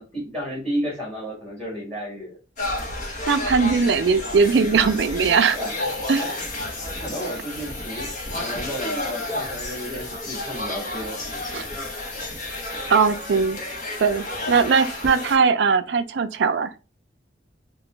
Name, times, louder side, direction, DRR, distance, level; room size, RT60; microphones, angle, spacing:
voice 1, 0.0-2.4 5.5-5.7 7.0-11.2, equal, 5° left, 1.5 m, -32 dB
sound 1, 2.6-15.4, left 2 dB, 45° left, 1.0 m, -31 dB
voice 2, 3.3-5.6 6.1-6.2 11.5-11.6 12.9-13.6 14.0-16.7, right 5 dB, 70° right, 0.4 m, -20 dB
3.9 x 2.2 x 3.2 m
head